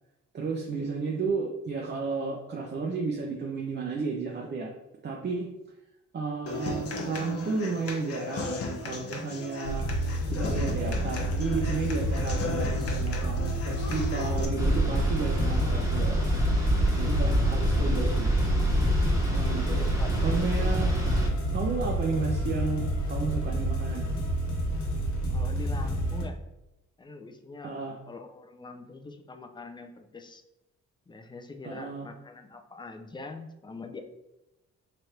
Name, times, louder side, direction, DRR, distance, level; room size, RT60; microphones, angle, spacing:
voice 1, 0.3-4.7 5.0-5.5 6.1-9.9 10.3-16.2 17.0-18.3 19.3-19.8 20.2-20.9 21.5-24.1 27.6-28.0 31.6-32.1, right 4 dB, 35° right, -1 dB, 0.6 m, -32 dB
Human voice / Acoustic guitar, 6.5-14.4, left 3 dB, 50° left, 0.9 m, -36 dB
sound 1, 9.6-26.2, right 1 dB, 70° left, 1.2 m, -29 dB
sound 2, 14.6-21.3, equal, 10° right, 1.0 m, -26 dB
voice 2, 19.7-20.1 25.3-26.4 27.0-27.8 28.1-30.4 31.1-34.0, left 3 dB, 15° left, 6 dB, 0.4 m, -43 dB
3.3 x 2.6 x 4.4 m, 0.93 s
cardioid pair, 90°, 30 cm